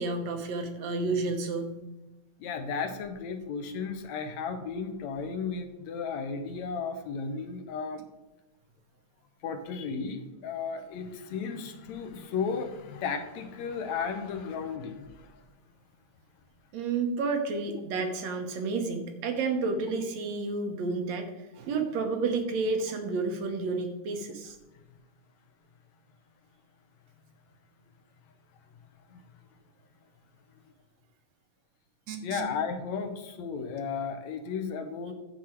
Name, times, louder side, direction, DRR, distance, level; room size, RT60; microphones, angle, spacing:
voice 1, 0.0-1.8 16.7-24.6 32.1-32.4, right 3 dB, 70° right, 5 dB, 2.2 m, -31 dB
voice 2, 2.4-8.0 9.4-15.4 29.1-29.2 32.2-35.1, left 5 dB, 75° left, 8 dB, 2.1 m, -34 dB
10.5 x 8.0 x 4.5 m, 1.1 s
omnidirectional pair, 3.4 m